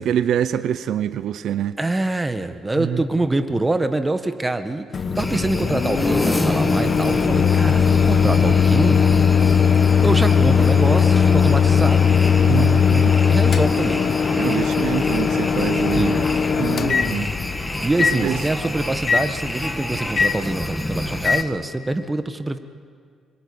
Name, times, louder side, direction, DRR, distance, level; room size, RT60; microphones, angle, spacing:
voice 1, 0.0-1.8 2.8-3.0 12.5-13.1 14.3-16.2 16.5-17.3 18.1-18.4, right 10 dB, 75° right, 13 dB, 0.8 m, -25 dB
voice 2, 1.8-9.1 10.0-12.0 13.2-14.0 15.9-16.4 17.8-22.6, right 2 dB, 15° right, 8 dB, 1.6 m, -25 dB
Microwave oven, 4.9-21.4, left 6 dB, 50° left, 1.2 m, -19 dB
sound 1, 5.2-21.4, left 1 dB, 10° left, 2.0 m, -29 dB
26.0 x 22.5 x 8.8 m, 2.1 s
cardioid pair, 90°, 0 cm